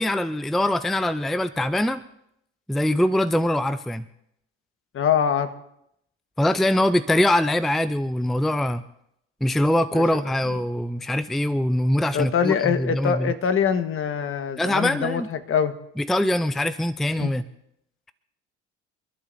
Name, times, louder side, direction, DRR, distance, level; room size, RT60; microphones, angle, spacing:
voice 1, 0.0-2.0 2.7-4.0 6.4-8.8 9.4-13.3 14.6-15.3 16.0-17.4, left 1 dB, ahead, 13 dB, 0.5 m, -23 dB
voice 2, 4.9-5.5 9.9-10.0 12.1-15.7 17.2-17.5, left 7 dB, 45° left, 9 dB, 1.4 m, -24 dB
29.5 x 11.5 x 2.7 m, 0.77 s
hypercardioid pair, 70°, 31 cm